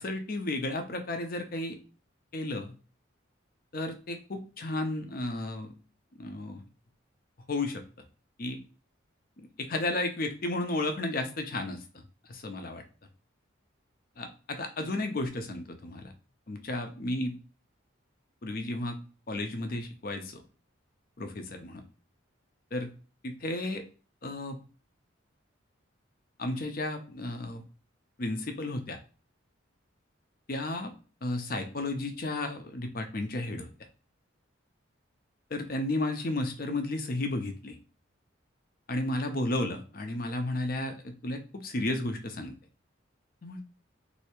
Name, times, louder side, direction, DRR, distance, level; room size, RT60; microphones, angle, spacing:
voice 1, 0.0-1.8 2.3-2.7 3.7-5.7 6.2-6.6 7.5-7.8 8.4-8.6 9.4-11.8 12.3-12.8 14.2-16.1 16.5-17.3 18.4-19.0 19.3-20.4 21.2-21.8 22.7-22.9 23.2-23.8 24.2-24.6 26.4-27.6 28.2-29.0 30.5-30.9 31.2-33.7 35.5-37.8 38.9-42.5 43.4-43.6, left 2 dB, 45° left, 6 dB, 0.6 m, -33 dB
3.2 x 2.7 x 2.9 m, 0.37 s
head